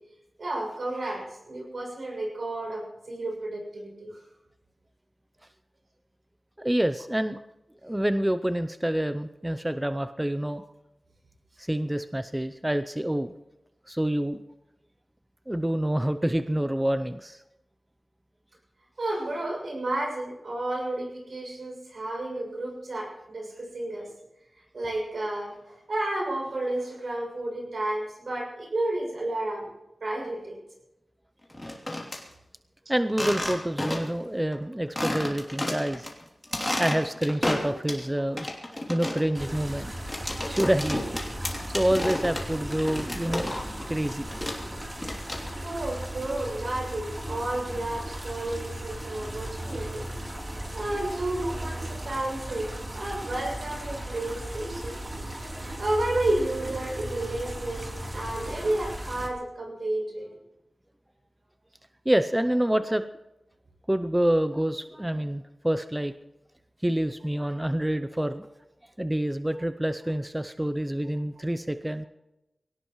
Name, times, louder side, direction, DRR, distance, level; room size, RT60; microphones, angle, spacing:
voice 1, 0.4-4.2 19.0-24.1 24.7-29.7 30.0-30.6 45.6-50.0 50.7-52.7 52.9-55.0 55.4-57.9 58.1-60.3, right 1 dB, 70° right, -1 dB, 6.9 m, -31 dB
voice 2, 6.6-7.4 7.8-10.6 11.6-13.3 13.9-14.4 15.5-17.4 32.9-36.1 36.5-39.9 40.5-41.0 41.4-43.5 43.9-44.2 62.1-63.0 63.9-66.1 66.8-68.5 69.0-72.1, right 1 dB, 10° right, 10 dB, 0.6 m, -27 dB
sound 1, 31.5-32.2 33.1-34.2 34.5-34.6 35.0-36.1 36.4-38.1 38.4-43.9 44.1-45.7, left 1 dB, 20° left, 2.9 m, -31 dB
sound 2, 39.3-59.3, right 1 dB, 30° right, 3.4 m, -37 dB
23.0 x 18.0 x 3.1 m, 0.94 s
wide cardioid pair, 85°, 0 cm